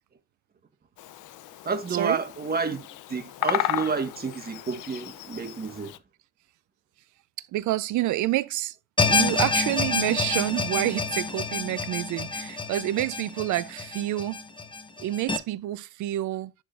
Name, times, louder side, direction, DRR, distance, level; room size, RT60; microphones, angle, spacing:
Bird vocalization bird call bird song, 1.0-6.0, left 14 dB, 80° left, 0.6 m, -34 dB
voice 1, 1.6-6.0, right 5 dB, 30° right, 1.4 m, -30 dB
voice 2, 7.5-8.8 9.1-14.4 15.0-16.5, right 15 dB, 75° right, 0.5 m, -28 dB
sound 1, 9.0-15.4, left 4 dB, 15° left, 0.8 m, -27 dB
10.5 x 3.7 x 2.5 m
cardioid pair, 90°, 30 cm